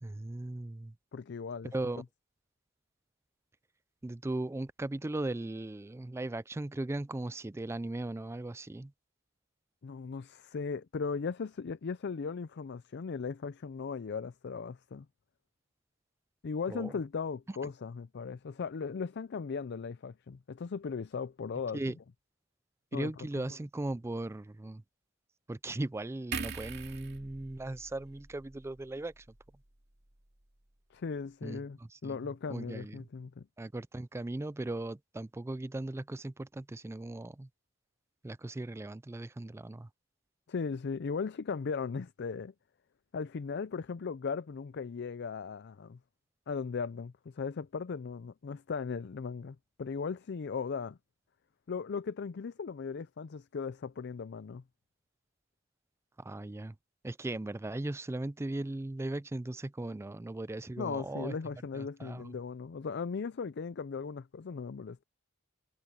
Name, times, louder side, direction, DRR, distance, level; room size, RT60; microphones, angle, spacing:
voice 1, 0.0-0.9 1.7-2.0 4.0-8.9 16.7-16.9 17.5-17.7 21.7-22.0 22.9-24.8 25.5-29.3 31.4-32.2 32.5-33.1 33.6-37.5 38.2-39.9 56.2-56.8 57.0-61.4 61.7-62.4, right 2 dB, 15° right, 0.3 m, -38 dB
voice 2, 1.1-1.7 9.8-15.1 16.4-21.8 22.9-23.1 30.9-33.5 40.5-42.5 43.1-46.0 46.5-51.0 51.7-54.6 60.8-65.0, left 5 dB, 55° left, 0.4 m, -37 dB
sound 1, 26.3-29.7 30.0-30.2, right 5 dB, 55° right, 2.5 m, -43 dB
head